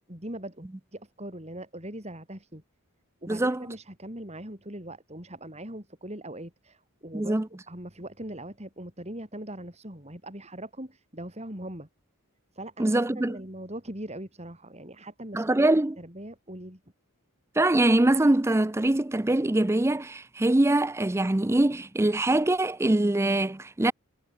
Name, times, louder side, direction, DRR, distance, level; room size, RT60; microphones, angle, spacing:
voice 1, 0.0-2.6 3.2-7.4 7.7-11.9 12.5-15.7 16.0-16.8, right 1 dB, 30° right, 5.1 m, -41 dB
voice 2, 3.3-3.7 7.1-7.5 12.8-13.4 15.3-16.0 17.6-23.9, right 1 dB, 10° right, 0.4 m, -23 dB
head